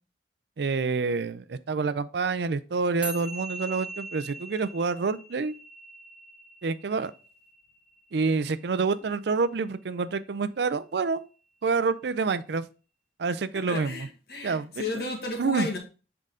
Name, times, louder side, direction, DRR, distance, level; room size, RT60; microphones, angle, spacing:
voice 1, 0.6-5.5 6.6-7.1 8.1-11.3 11.6-12.7 13.2-14.1 14.4-15.0 15.4-15.7, right 4 dB, 75° right, 0.4 m, -27 dB
sound 1, 3.0-9.6, right 2 dB, 5° right, 1.0 m, -42 dB
voice 2, 13.7-15.8, left 2 dB, 60° left, 1.7 m, -33 dB
7.5 x 3.8 x 3.7 m
head